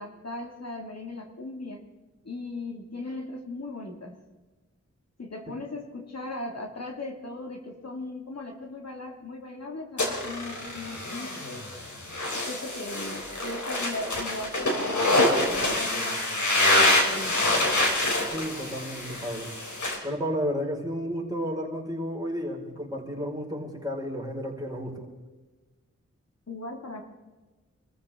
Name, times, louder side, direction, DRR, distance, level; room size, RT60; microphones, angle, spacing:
voice 1, 0.0-1.8 2.2-4.1 5.2-11.7 12.3-17.3 26.5-27.0, left 2 dB, 60° left, 2 dB, 2.4 m, -38 dB
sound 1, 10.0-20.0, left 1 dB, 85° left, 3.5 m, -26 dB
voice 2, 18.3-19.5 20.0-25.1, equal, 15° right, -2 dB, 5.0 m, -32 dB
26.5 x 14.5 x 3.7 m, 1.2 s
wide cardioid pair, 60°, 29 cm